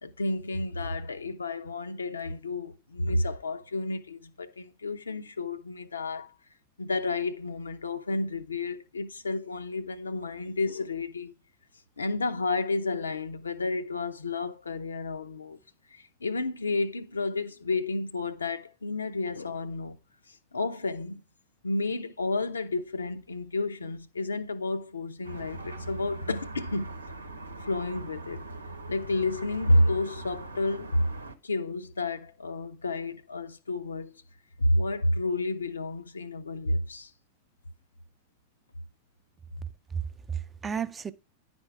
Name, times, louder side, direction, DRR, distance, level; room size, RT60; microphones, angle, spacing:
voice 1, 0.0-6.3 6.8-11.3 12.0-15.6 15.9-20.0 20.3-21.2 21.6-26.9 27.6-28.4 28.9-31.1 31.4-34.1 34.6-37.1, left 2 dB, 75° left, 0.6 m, -30 dB
sound 1, 25.2-31.3, right 2 dB, 80° right, 0.8 m, -41 dB
voice 2, 39.6-41.1, right 7 dB, 20° right, 0.5 m, -34 dB
10.5 x 4.3 x 4.5 m
figure-of-eight pair, 90°, 0 cm